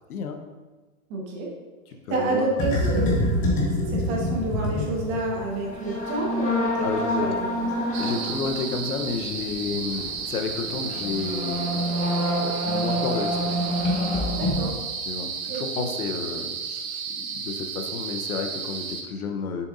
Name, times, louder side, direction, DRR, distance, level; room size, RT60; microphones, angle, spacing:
voice 1, 1.1-1.5 2.1-3.2 3.9-8.2 14.4-14.7 15.5-15.8, right 2 dB, 30° right, -2 dB, 1.5 m, -29 dB
voice 2, 2.0-2.5 6.8-7.3 8.0-11.8 12.4-13.6 15.1-19.7, left 5 dB, 80° left, 5 dB, 1.1 m, -31 dB
sound 1, 2.6-14.7, equal, 15° left, 1.3 m, -27 dB
sound 2, 7.9-19.0, right 5 dB, 65° right, 1.3 m, -33 dB
7.0 x 6.9 x 2.7 m, 1.2 s
hypercardioid pair, 150°, 44 cm